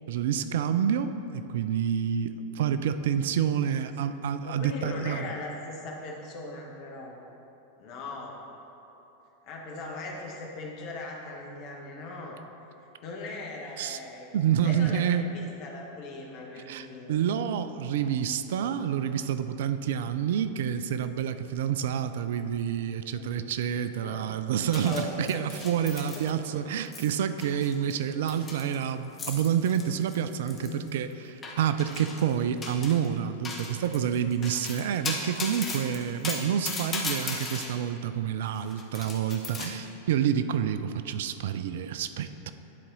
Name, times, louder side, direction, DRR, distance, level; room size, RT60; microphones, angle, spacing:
voice 1, 0.1-5.3 13.8-14.0 14.3-15.3 16.7-42.5, right 8 dB, 55° right, 11 dB, 0.3 m, -28 dB
voice 2, 4.4-7.2 7.8-8.4 9.4-12.4 13.0-14.3 14.6-17.2 23.1-23.3 24.0-24.4 24.7-25.4 26.1-26.5 30.6-30.8, left 2 dB, 40° left, -1 dB, 1.2 m, -39 dB
sound 1, 24.7-26.6 26.9-27.1 27.4-30.9 31.4-32.3 32.6-33.1 33.4-37.7 38.5-39.7, left 3 dB, 20° left, 1.1 m, -36 dB
10.5 x 4.1 x 3.9 m, 3.0 s
figure-of-eight pair, 90°, 0 cm